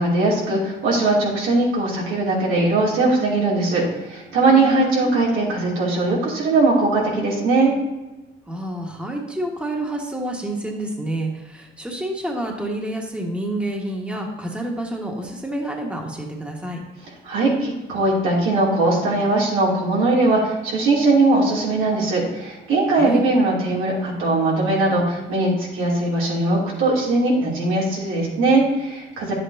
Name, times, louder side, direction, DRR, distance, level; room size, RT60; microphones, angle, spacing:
voice 1, 0.0-7.7 17.2-29.3, right 2 dB, 85° right, -4 dB, 3.0 m, -20 dB
voice 2, 4.5-5.2 8.5-16.8 23.0-23.2, right 1 dB, 5° right, 0 dB, 1.6 m, -28 dB
9.9 x 8.0 x 2.8 m, 1.1 s
cardioid pair, 90°, 20 cm